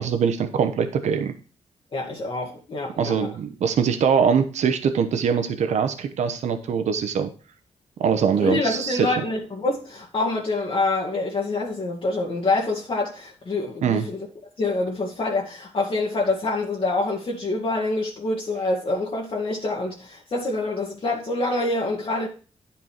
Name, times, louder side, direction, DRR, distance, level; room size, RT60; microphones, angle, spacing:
voice 1, 0.0-1.3 3.0-7.3 8.0-9.1 13.8-14.1, right 7 dB, 85° right, 1.0 m, -22 dB
voice 2, 1.9-3.3 8.4-14.3 14.6-22.3, left 2 dB, 50° left, 1.9 m, -26 dB
9.9 x 5.4 x 4.5 m
cardioid pair, 85°, 12 cm